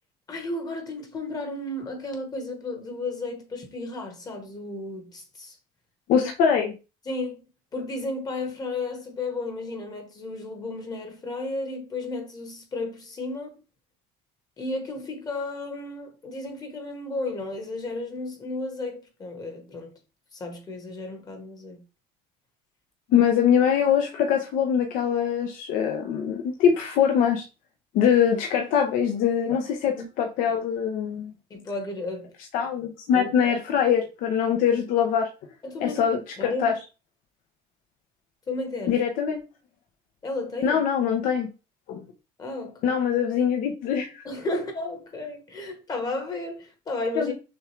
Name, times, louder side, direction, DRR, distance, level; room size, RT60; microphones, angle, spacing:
voice 1, 0.3-5.6 6.2-6.3 7.0-7.4 7.7-13.6 14.6-20.0 20.3-21.8 30.0-30.1 31.5-32.3 33.1-33.5 35.6-36.8 38.5-39.0 40.2-40.8 42.4-43.0 44.2-47.3, left 2 dB, 25° left, 1.3 m, -33 dB
voice 2, 6.1-6.7 23.1-27.4 27.9-31.3 32.5-35.3 35.8-36.7 38.9-39.4 40.6-41.5 41.9-42.0 42.8-44.3 47.2-47.3, left 8 dB, 60° left, 0.8 m, -23 dB
6.2 x 2.4 x 3.2 m
cardioid pair, 145°, 16 cm